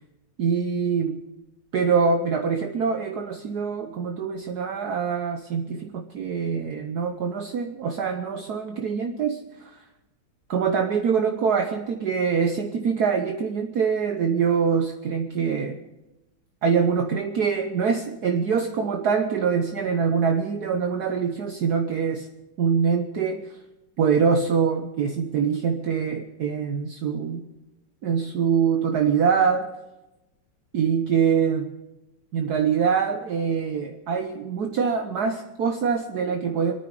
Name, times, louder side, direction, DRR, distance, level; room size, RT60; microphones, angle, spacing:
voice 1, 0.4-1.2 1.7-9.8 10.5-15.8 16.6-22.3 22.6-23.5 24.0-27.4 28.0-29.7 30.7-31.7 32.3-36.7, right 6 dB, 60° right, 5 dB, 1.3 m, -24 dB
27.5 x 9.5 x 4.8 m, 0.99 s
omnidirectional pair, 2.1 m